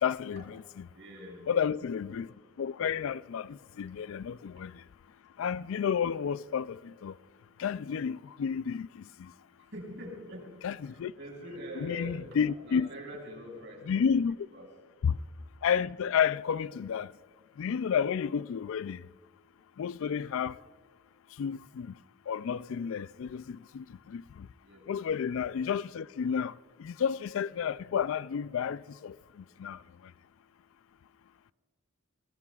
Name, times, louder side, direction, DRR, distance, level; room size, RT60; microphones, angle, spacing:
voice 1, 0.0-0.6 1.5-2.3 2.6-4.7 5.4-6.8 7.0-7.1 7.6-8.9 10.6-11.1 11.8-12.9 13.9-14.4 15.0-15.1 15.6-17.1 17.6-19.0 19.8-20.5 21.4-21.9 22.3-24.2 24.9-26.5 26.8-29.1 29.6-29.8, left 7 dB, 65° left, 0.3 m, -31 dB
voice 2, 0.9-1.5 9.7-10.6 10.8-14.0 14.5-14.7 24.6-24.8, equal, 55° right, 5.9 m, -44 dB
24.0 x 20.0 x 2.4 m
head